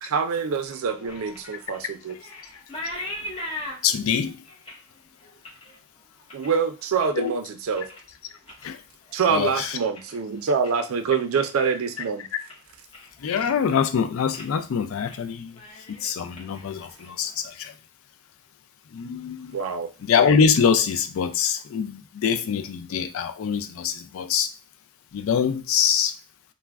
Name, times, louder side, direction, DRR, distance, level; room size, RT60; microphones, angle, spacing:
voice 1, 0.0-2.2 6.3-7.9 9.1-12.3 19.5-19.9, right 6 dB, 75° right, 0.4 m, -25 dB
sound 1, 0.6-7.3 7.6-8.1 8.4-10.9 11.2-11.6 12.0-12.1 12.5-13.3 13.6-14.0 14.3-14.5 14.9-15.2 15.5-17.3, left 1 dB, 25° left, 0.6 m, -40 dB
voice 2, 3.8-4.4 7.2-7.3 8.6-8.8 9.3-9.8 13.2-15.5 15.9-17.7 18.9-19.6 20.0-24.5 25.1-26.1, left 7 dB, 65° left, 0.3 m, -24 dB
2.3 x 2.1 x 3.3 m
head